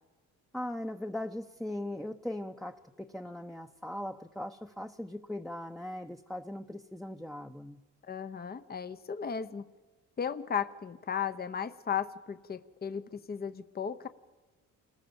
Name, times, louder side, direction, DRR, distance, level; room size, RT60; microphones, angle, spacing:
voice 1, 0.5-7.8, left 1 dB, ahead, 4 dB, 0.9 m, -39 dB
voice 2, 8.0-9.6 10.2-14.1, left 7 dB, 30° left, 11 dB, 1.0 m, -35 dB
28.5 x 20.0 x 7.2 m, 1.3 s
cardioid pair, 90°, 30 cm